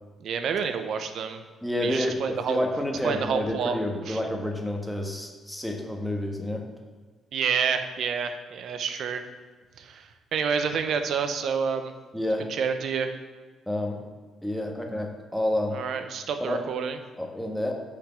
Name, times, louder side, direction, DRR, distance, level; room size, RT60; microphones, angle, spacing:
voice 1, 0.2-1.4 1.8-2.6 3.0-3.8 4.0-4.2 7.3-9.2 9.8-11.9 12.5-13.1 15.7-17.0, right 6 dB, 70° right, 8 dB, 0.8 m, -28 dB
voice 2, 1.6-6.7 12.1-12.5 13.7-14.0 14.4-15.8 16.4-16.7 17.2-17.7, left 1 dB, 5° left, 2 dB, 1.4 m, -29 dB
7.1 x 5.0 x 7.0 m, 1.4 s
cardioid pair, 90°, 0 cm